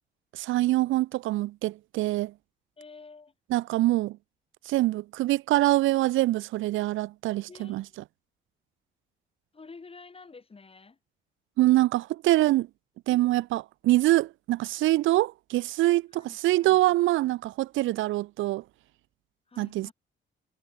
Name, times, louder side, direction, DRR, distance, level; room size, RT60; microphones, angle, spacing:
voice 1, 0.3-2.3 3.5-4.2 4.7-7.8 11.6-12.7 13.1-18.6 19.6-19.9, right 17 dB, 80° right, 0.5 m, -24 dB
voice 2, 2.8-3.3 7.5-8.0 9.5-11.0 13.1-13.2 16.1-16.8 19.5-19.9, left 4 dB, 30° left, 6.8 m, -49 dB
cardioid pair, 90°, 20 cm